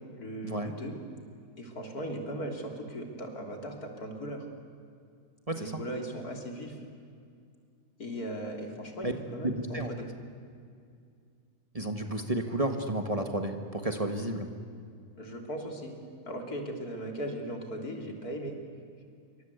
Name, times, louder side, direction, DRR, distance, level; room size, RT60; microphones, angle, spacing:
voice 1, 0.1-0.9 1.6-4.4 5.6-6.8 8.0-10.1 15.2-15.9 16.3-18.6, equal, 75° left, 2 dB, 3.7 m, -38 dB
voice 2, 5.5-5.8 9.0-9.1 9.4-9.9 11.7-14.5, right 1 dB, 25° right, 5 dB, 1.7 m, -31 dB
27.0 x 24.5 x 8.3 m, 2.3 s
omnidirectional pair, 1.6 m